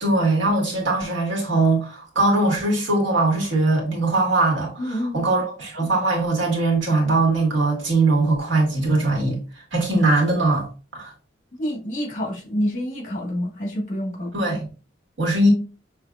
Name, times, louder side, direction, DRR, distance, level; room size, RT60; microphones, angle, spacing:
voice 1, 0.0-9.4 9.7-10.7 10.9-11.1 14.3-14.7 15.2-15.5, right 2 dB, 80° right, 1.8 m, -21 dB
voice 2, 4.8-5.2 11.6-14.3, equal, 40° left, 1.6 m, -27 dB
6.4 x 3.3 x 2.4 m
head